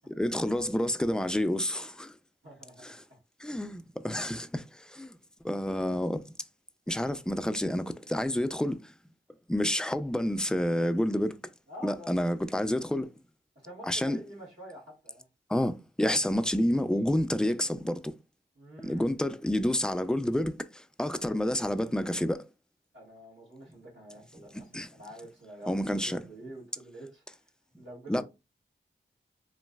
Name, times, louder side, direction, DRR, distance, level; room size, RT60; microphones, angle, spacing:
voice 1, 0.2-2.1 2.8-3.0 3.4-4.6 4.9-5.1 5.4-6.2 6.9-8.8 9.5-11.3 11.8-13.1 13.8-14.2 15.5-18.1 18.8-20.6 21.0-22.5 24.5-24.9 25.7-26.2 28.1-28.2, left 1 dB, 5° left, 0.3 m, -29 dB
voice 2, 2.4-3.2 11.7-12.4 13.5-15.3 18.5-19.1 22.9-27.5 27.8-28.2, right 1 dB, 80° right, 1.6 m, -47 dB
3.0 x 2.5 x 2.2 m
cardioid pair, 45°, 20 cm